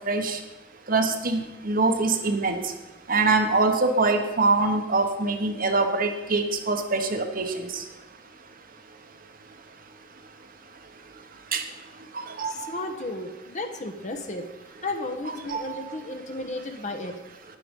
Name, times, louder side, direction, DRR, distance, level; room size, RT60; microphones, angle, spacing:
voice 1, 0.0-0.4 0.9-2.7 3.1-7.9 11.5-11.6 12.1-12.8 15.5-16.0, right 3 dB, 50° right, 6 dB, 1.3 m, -24 dB
voice 2, 12.4-14.4 14.8-17.2, left 2 dB, 40° left, 6 dB, 1.2 m, -33 dB
10.5 x 10.0 x 5.4 m, 1.1 s
head